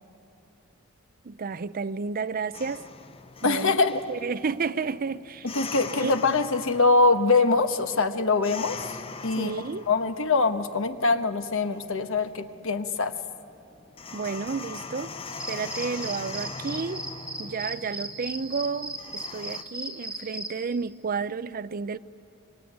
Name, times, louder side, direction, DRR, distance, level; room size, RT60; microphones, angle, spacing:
voice 1, 1.2-2.9 3.4-3.8 4.1-5.5 6.0-6.1 9.4-9.8 14.1-15.1 15.5-17.1 17.4-22.0, right 5 dB, 45° right, 0.5 m, -31 dB
sound 1, 2.5-19.6, left 4 dB, 30° left, 0.8 m, -42 dB
voice 2, 3.4-4.0 5.5-8.8 9.2-9.5 9.9-13.1, left 3 dB, 65° left, 1.3 m, -23 dB
sound 2, 15.3-20.5, right 1 dB, 5° right, 3.0 m, -37 dB
27.0 x 22.5 x 9.4 m
head